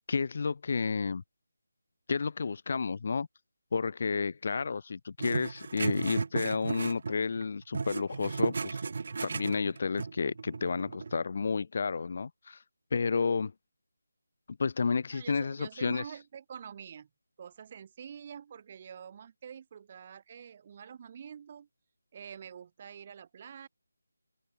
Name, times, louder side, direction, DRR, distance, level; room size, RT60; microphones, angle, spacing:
voice 1, 0.1-1.2 2.1-3.3 3.7-8.8 9.2-12.6 12.9-13.5 14.6-16.0, left 5 dB, 45° left, 0.4 m, -31 dB
sound 1, 5.2-7.5 7.7-11.2, right 4 dB, 50° right, 2.6 m, -35 dB
voice 2, 15.1-17.1 17.4-21.7 22.1-23.7, right 7 dB, 30° right, 4.7 m, -46 dB
open air
figure-of-eight pair, 165°, 0 cm